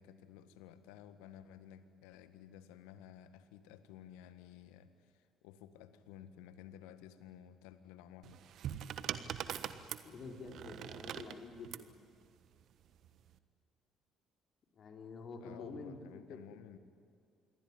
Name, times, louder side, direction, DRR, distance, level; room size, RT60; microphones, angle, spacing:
voice 1, 0.0-8.4 15.4-16.8, left 10 dB, 75° left, 11 dB, 1.6 m, -54 dB
sound 1, 8.2-11.9 13.0-13.3, right 10 dB, 60° right, 1.3 m, -42 dB
voice 2, 10.0-11.9 14.8-16.0 16.3-16.4, left 4 dB, 50° left, 3 dB, 4.2 m, -48 dB
27.0 x 22.5 x 9.7 m, 2.4 s
hypercardioid pair, 50°, 0 cm